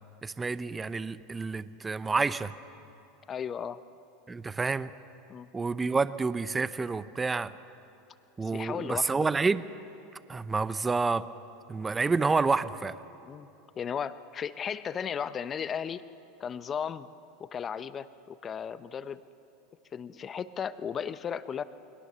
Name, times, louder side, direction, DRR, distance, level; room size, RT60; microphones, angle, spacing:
voice 1, 0.2-2.5 4.3-4.9 5.5-7.5 8.4-9.6 10.3-11.2 11.7-12.9, right 4 dB, 15° right, 14 dB, 0.8 m, -28 dB
voice 2, 3.3-3.8 5.3-5.5 8.4-9.3 13.2-13.5 13.8-16.0 16.4-17.1 17.4-19.2 19.9-21.6, left 7 dB, 30° left, 13 dB, 0.8 m, -35 dB
29.0 x 21.0 x 6.9 m, 2.8 s
hypercardioid pair, 105°, 0 cm